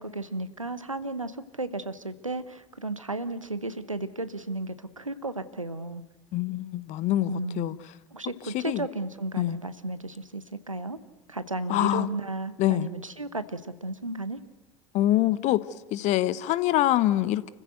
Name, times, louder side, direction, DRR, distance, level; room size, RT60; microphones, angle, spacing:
voice 1, 0.0-6.0 7.3-7.8 8.1-11.0 11.3-14.4, right 2 dB, 90° right, 1.0 m, -34 dB
voice 2, 6.3-7.7 8.5-8.8 9.4-9.6 11.7-12.1 12.6-12.9 14.9-15.6 15.9-17.5, left 14 dB, 45° left, 1.0 m, -25 dB
29.5 x 15.0 x 8.0 m
figure-of-eight pair, 70°, 16 cm